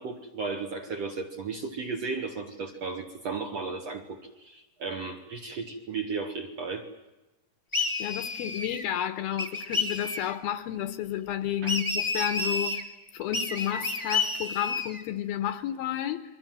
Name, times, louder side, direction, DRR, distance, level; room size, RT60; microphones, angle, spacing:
voice 1, 0.0-6.9 11.6-11.8, right 4 dB, 55° right, 2.0 m, -35 dB
sound 1, 7.7-8.9 9.4-10.3 11.7-12.8 13.3-15.0, left 3 dB, 10° left, 1.3 m, -30 dB
voice 2, 7.8-16.2, left 11 dB, 70° left, 2.7 m, -32 dB
29.0 x 23.0 x 7.7 m
omnidirectional pair, 4.8 m